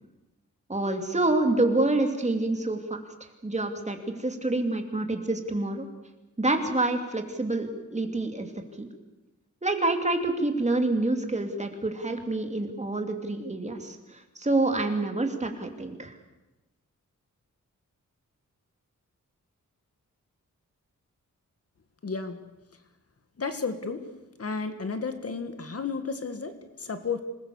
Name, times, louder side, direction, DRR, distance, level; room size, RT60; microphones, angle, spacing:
voice 1, 0.7-3.0 3.4-5.9 6.4-8.5 8.8-8.9 9.6-16.1, right 2 dB, 20° right, 5 dB, 2.8 m, -27 dB
voice 2, 22.0-22.4 23.4-24.1 24.4-27.2, left 4 dB, 50° left, 8 dB, 1.8 m, -32 dB
26.5 x 20.5 x 7.1 m, 1.0 s
wide cardioid pair, 140°, 32 cm